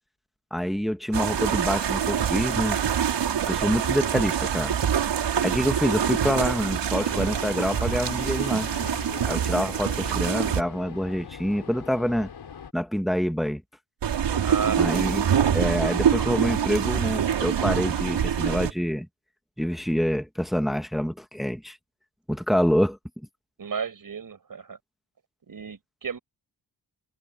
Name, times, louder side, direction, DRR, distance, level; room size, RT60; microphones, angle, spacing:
voice 1, 0.5-2.8 3.5-4.8 5.4-8.7 9.2-12.3 12.7-13.6 14.8-15.3 15.5-19.1 19.6-21.8 22.3-23.0, equal, ahead, 1.8 m, -26 dB
sound 1, 1.1-10.6 14.0-18.7, right 8 dB, 80° right, 4.8 m, -25 dB
sound 2, 6.9-12.7, left 7 dB, 65° left, 7.1 m, -41 dB
voice 2, 14.4-15.2 23.6-24.8 25.5-26.2, right 6 dB, 50° right, 5.6 m, -33 dB
cardioid pair, 80°, 42 cm